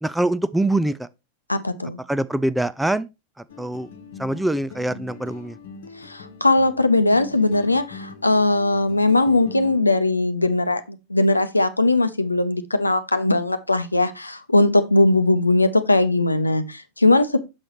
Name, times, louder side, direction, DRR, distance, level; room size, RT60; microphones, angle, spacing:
voice 1, 0.0-1.1 2.1-3.1 3.4-3.9 4.2-5.6, right 1 dB, 5° right, 0.4 m, -24 dB
voice 2, 1.5-2.0 6.0-17.4, left 2 dB, 85° left, 0.7 m, -19 dB
sound 1, 3.5-9.8, left 4 dB, 60° left, 1.1 m, -41 dB
6.5 x 6.2 x 2.9 m
figure-of-eight pair, 90°, 0 cm